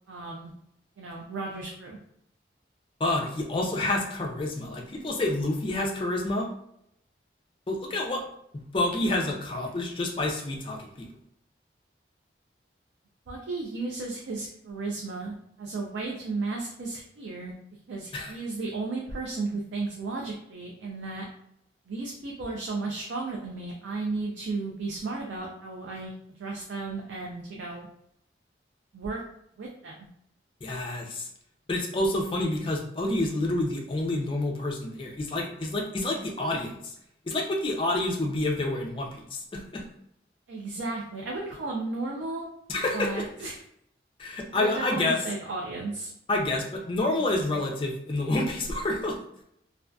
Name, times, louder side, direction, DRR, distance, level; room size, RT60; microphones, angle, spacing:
voice 1, 0.1-0.5 1.0-2.0 13.3-17.5 17.9-21.2 21.9-26.1 26.4-27.9 28.9-29.2 29.6-30.0 40.5-42.5 42.9-43.6 44.5-46.1, right 3 dB, 85° right, -1 dB, 0.4 m, -34 dB
voice 2, 3.0-6.5 7.7-8.2 8.5-11.1 18.1-18.3 30.6-31.3 31.7-36.9 37.3-39.8 42.7-43.3 44.2-45.2 46.3-49.2, left 2 dB, 30° left, 0 dB, 0.4 m, -28 dB
2.4 x 2.3 x 2.2 m, 0.73 s
head